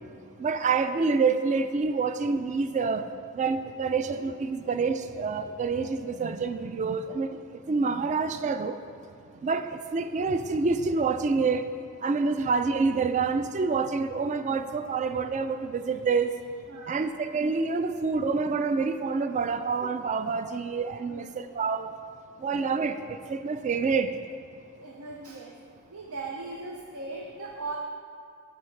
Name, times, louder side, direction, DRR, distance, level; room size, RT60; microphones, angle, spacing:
voice 1, 0.4-3.0 3.3-7.3 7.7-8.8 9.4-11.7 12.0-16.3 16.9-21.9 22.4-24.1, right 4 dB, 35° right, 10 dB, 0.3 m, -27 dB
voice 2, 3.9-4.3 16.7-17.0 21.0-21.3 24.8-25.5 25.9-27.8, right 3 dB, 80° right, 0 dB, 0.6 m, -39 dB
13.0 x 4.8 x 3.2 m, 2.4 s
head